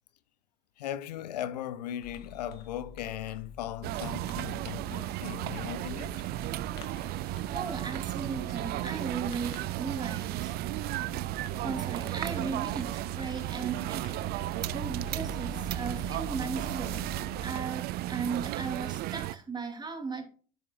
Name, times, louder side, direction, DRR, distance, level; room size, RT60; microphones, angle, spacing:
voice 1, 0.8-6.3, left 11 dB, 80° left, 0.5 m, -38 dB
Fireworks, 2.0-17.4, left 4 dB, 50° left, 1.9 m, -47 dB
sound 1, 3.8-19.3, right 16 dB, 50° right, 0.5 m, -34 dB
voice 2, 7.5-10.6 11.6-17.1 17.4-20.2, right 5 dB, 20° right, 2.9 m, -37 dB
10.5 x 7.8 x 2.3 m
hypercardioid pair, 70°, 21 cm